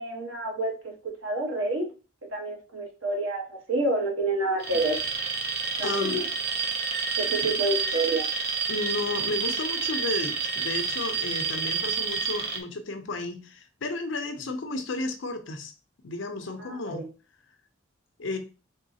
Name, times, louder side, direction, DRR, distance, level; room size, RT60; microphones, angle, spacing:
voice 1, 0.0-1.9 2.3-5.0 5.8-6.3 7.2-8.3 16.6-17.1, right 2 dB, 85° right, 0 dB, 1.2 m, -28 dB
Alarm, 4.6-12.6, right 5 dB, 55° right, 0.6 m, -29 dB
voice 2, 5.8-6.2 8.7-15.7 16.0-17.1 18.2-18.4, left 2 dB, 70° left, 7 dB, 0.6 m, -33 dB
3.6 x 3.1 x 2.8 m, 0.33 s
head